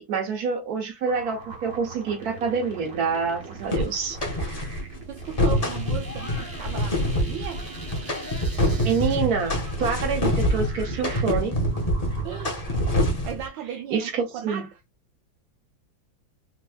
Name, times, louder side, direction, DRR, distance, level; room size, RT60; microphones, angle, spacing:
voice 1, 0.0-4.2 8.8-11.6 13.9-14.7, right 5 dB, 55° right, 1.5 m, -27 dB
sound 1, 1.0-13.0, right 4 dB, 35° right, 1.4 m, -42 dB
sound 2, 3.7-4.8 5.2-13.5, equal, 30° left, 0.7 m, -26 dB
voice 2, 4.7-7.7 12.2-12.8 13.2-14.7, right 9 dB, 75° right, 1.3 m, -36 dB
4.4 x 3.1 x 2.3 m
omnidirectional pair, 2.1 m